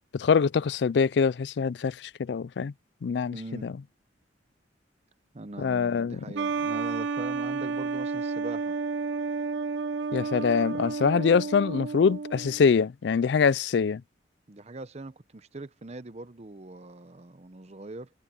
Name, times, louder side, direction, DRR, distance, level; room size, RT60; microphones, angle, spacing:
voice 1, 0.1-2.7 3.0-3.4 3.6-3.7 5.6-6.3 10.1-14.0, left 6 dB, 65° left, 0.4 m, -24 dB
voice 2, 3.3-3.7 5.3-8.7 14.5-18.1, right 2 dB, 35° right, 0.8 m, -41 dB
sound 1, 6.3-12.7, right 4 dB, 85° right, 0.7 m, -31 dB
head